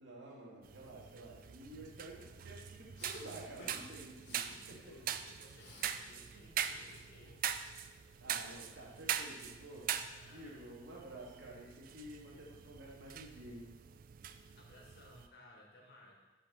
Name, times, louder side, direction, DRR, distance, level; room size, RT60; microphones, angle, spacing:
voice 1, 0.0-5.0 8.2-9.9 10.3-13.7, right 1 dB, 85° right, -4 dB, 2.3 m, -51 dB
sound 1, 0.6-15.3, right 9 dB, 50° right, 0.3 m, -43 dB
Respiratory sounds, 3.0-3.2 3.6-3.9 4.2-4.4 4.8-6.0 6.3-7.7, left 2 dB, 75° left, 1.6 m, -57 dB
voice 2, 5.0-7.4 9.9-10.7 14.5-16.1, left 1 dB, 55° left, -1 dB, 1.6 m, -60 dB
5.6 x 5.1 x 6.3 m, 1.3 s
head